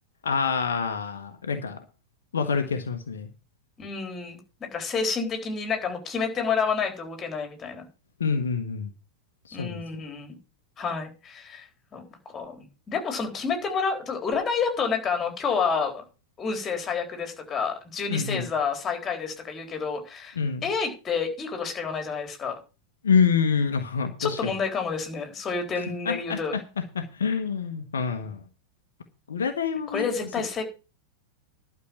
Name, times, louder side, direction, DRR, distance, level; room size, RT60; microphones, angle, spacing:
voice 1, 0.2-1.8 2.3-3.3 8.2-8.9 9.5-9.8 18.1-18.5 20.4-20.7 23.0-24.5 25.8-26.6 26.9-28.4 29.3-30.0, left 6 dB, 65° left, 7 dB, 1.2 m, -26 dB
voice 2, 3.8-7.9 9.5-10.4 10.8-16.0 16.4-22.6 24.2-26.7 29.9-30.6, left 5 dB, 20° left, 5 dB, 3.9 m, -29 dB
11.5 x 6.0 x 7.5 m, 0.32 s
figure-of-eight pair, 90°, 0 cm